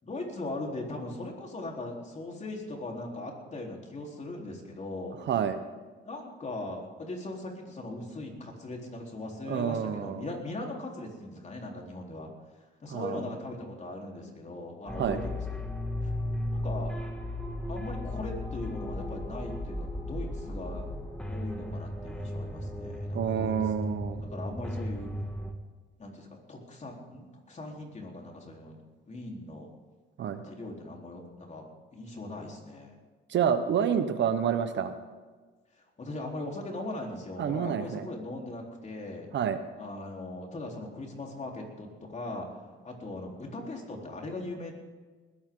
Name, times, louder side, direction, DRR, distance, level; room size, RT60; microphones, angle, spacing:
voice 1, 0.0-5.2 6.0-12.3 12.8-15.4 15.7-16.1 16.5-17.0 17.7-20.9 21.3-23.5 23.9-25.1 26.0-28.8 29.1-29.7 30.4-31.6 31.9-33.0 36.0-39.3 39.8-42.5 42.8-44.7, left 2 dB, 35° left, 0 dB, 4.0 m, -39 dB
voice 2, 5.3-5.6 9.5-10.3 12.9-13.2 15.0-15.2 23.1-24.3 30.2-30.4 33.3-34.9 37.4-38.1 39.3-39.6, right 8 dB, 65° right, 9 dB, 1.2 m, -28 dB
sound 1, 14.9-25.5, left 1 dB, 5° left, 2.4 m, -35 dB
20.5 x 15.0 x 3.9 m, 1.4 s
cardioid pair, 90°, 20 cm